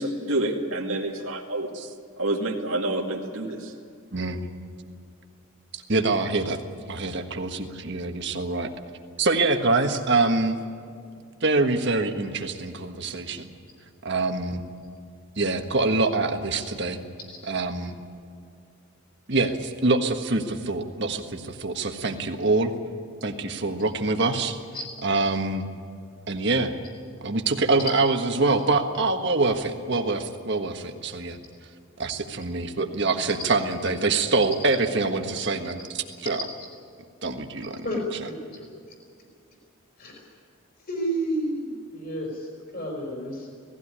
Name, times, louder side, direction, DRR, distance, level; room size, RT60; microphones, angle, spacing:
voice 1, 0.0-1.7 2.2-3.7, right 1 dB, 70° right, 0 dB, 2.3 m, -28 dB
voice 2, 4.1-4.4 5.7-6.6 6.9-8.7 9.2-10.6 11.4-13.5 14.0-14.6 15.4-17.0 17.5-18.0 19.3-22.7 23.2-24.6 25.0-25.7 26.3-26.7 27.2-31.4 32.0-36.4 37.2-37.8, right 3 dB, 50° right, 5 dB, 1.5 m, -25 dB
voice 3, 37.8-38.6 40.0-40.2 40.9-43.5, right 1 dB, 45° left, 1 dB, 4.9 m, -31 dB
18.5 x 15.5 x 9.9 m, 2.2 s
head